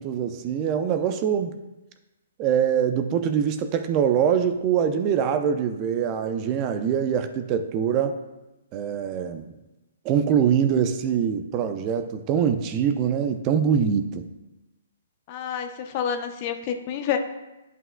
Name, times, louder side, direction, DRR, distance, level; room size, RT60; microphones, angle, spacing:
voice 1, 0.0-1.5 2.4-8.2 8.7-9.5 10.0-14.3, right 8 dB, 30° right, 8 dB, 0.5 m, -23 dB
voice 2, 15.3-17.2, left 8 dB, 40° left, 6 dB, 0.7 m, -28 dB
10.5 x 5.5 x 2.2 m, 1.0 s
figure-of-eight pair, 125°, 0 cm